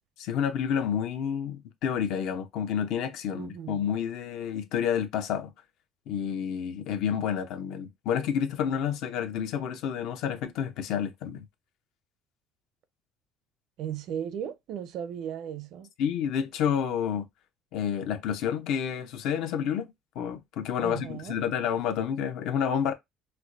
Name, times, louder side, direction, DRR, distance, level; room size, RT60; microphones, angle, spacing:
voice 1, 0.2-5.5 6.1-11.5 16.0-17.3 17.7-19.9 20.2-22.9, left 8 dB, 70° left, 0.7 m, -29 dB
voice 2, 3.3-3.8 13.8-15.9 20.8-21.4, right 9 dB, 65° right, 0.5 m, -36 dB
4.4 x 2.2 x 2.5 m
cardioid pair, 105°, 0 cm